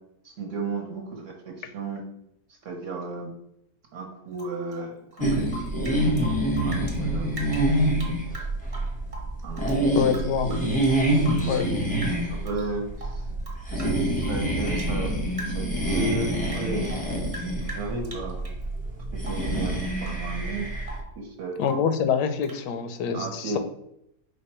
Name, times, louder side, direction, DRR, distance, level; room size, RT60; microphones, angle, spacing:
voice 1, 0.2-2.0 2.6-3.3 3.9-6.2 6.7-7.6 9.4-10.5 11.4-13.2 13.7-15.2 15.5-18.5 19.1-20.7 21.2-21.6 23.1-23.6, right 3 dB, 60° right, 1 dB, 1.0 m, -34 dB
Rain / Drip, 4.3-7.0 7.3-9.8 10.1-11.8 12.0-12.7 13.0-15.0 15.3-15.8 16.1-18.6 19.2-19.6 20.0-20.3 20.6-21.2 21.6-22.0 22.4-22.7, right 1 dB, 35° right, 0.6 m, -42 dB
sound 1, 5.2-21.0, right 1 dB, 10° left, 0.4 m, -26 dB
voice 2, 9.9-10.5 11.5-11.7 21.6-23.6, left 7 dB, 90° left, 9 dB, 1.2 m, -25 dB
5.1 x 2.2 x 4.2 m, 0.79 s
omnidirectional pair, 1.8 m